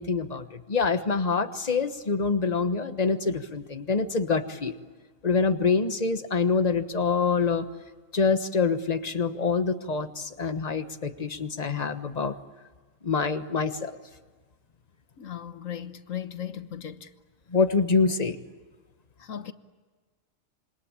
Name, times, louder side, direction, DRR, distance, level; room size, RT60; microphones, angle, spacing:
voice 1, 0.0-4.8 5.2-7.7 8.1-12.3 13.0-13.9 17.5-18.4, left 4 dB, 30° left, 1.3 m, -26 dB
voice 2, 15.2-17.1 19.2-19.5, left 9 dB, 75° left, 1.5 m, -37 dB
27.0 x 25.0 x 8.7 m
omnidirectional pair, 1.4 m